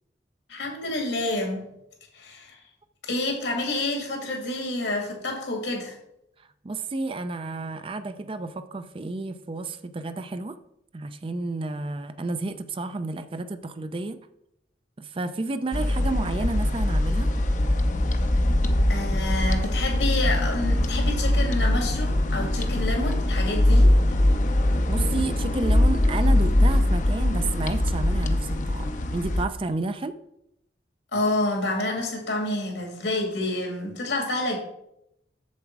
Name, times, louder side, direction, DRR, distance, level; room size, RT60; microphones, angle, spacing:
voice 1, 0.5-1.7 2.1-2.6 3.1-5.9 18.9-23.9 31.1-34.6, left 2 dB, 85° left, 2 dB, 2.4 m, -28 dB
voice 2, 6.6-10.6 10.9-14.2 15.0-17.3 24.9-30.1, right 3 dB, 30° right, 11 dB, 0.4 m, -31 dB
sound 1, 15.7-29.4, left 1 dB, 45° left, 0.6 m, -22 dB
7.3 x 7.0 x 4.6 m, 0.80 s
head